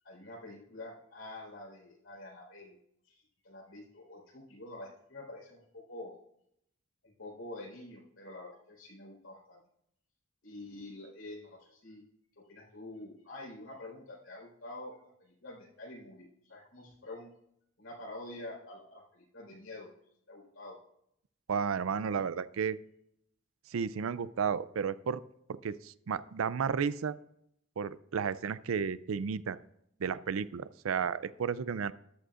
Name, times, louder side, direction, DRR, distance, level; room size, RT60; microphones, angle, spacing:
voice 1, 0.0-2.8 3.0-6.1 7.0-9.6 10.4-12.0 12.5-17.3 17.8-19.9 20.3-20.8, left 2 dB, 80° left, -1 dB, 4.4 m, -47 dB
voice 2, 21.5-22.8 23.7-25.2 25.5-27.2 27.8-29.6 30.0-31.9, right 6 dB, 85° right, 16 dB, 0.4 m, -33 dB
14.0 x 11.0 x 2.5 m, 0.75 s
head